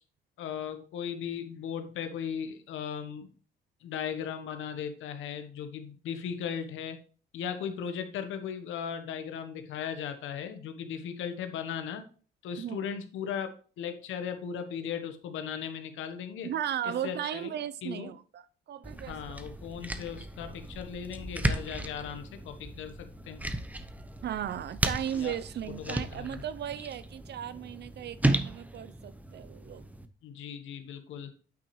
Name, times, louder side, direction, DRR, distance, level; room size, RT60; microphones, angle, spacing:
voice 1, 0.4-3.3 3.8-7.0 7.3-12.0 12.4-13.5 13.8-16.5 16.8-17.5 17.8-18.1 19.1-23.4 25.1-25.3 25.8-26.4 30.2-31.3, left 8 dB, 85° left, 1.1 m, -37 dB
voice 2, 12.6-12.9 16.4-19.4 24.2-29.9, right 10 dB, 60° right, 0.6 m, -36 dB
sound 1, 18.8-30.1, right 1 dB, 10° right, 0.7 m, -35 dB
9.1 x 5.8 x 3.1 m
cardioid pair, 90°, 20 cm